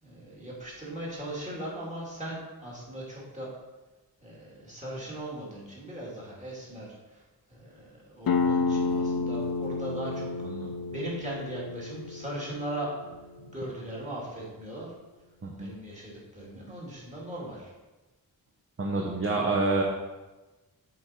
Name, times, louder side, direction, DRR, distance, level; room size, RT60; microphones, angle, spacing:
voice 1, 0.0-3.5 4.2-7.2 7.5-10.3 10.9-12.9 13.5-14.9 15.6-17.7, right 1 dB, 20° right, -5 dB, 2.4 m, -39 dB
sound 1, 8.3-13.7, left 4 dB, 65° left, 0.6 m, -30 dB
voice 2, 10.4-10.7 15.4-15.7 18.8-19.8, right 3 dB, 35° right, 0 dB, 0.8 m, -28 dB
7.5 x 4.8 x 4.3 m, 1.2 s
wide cardioid pair, 135°, 37 cm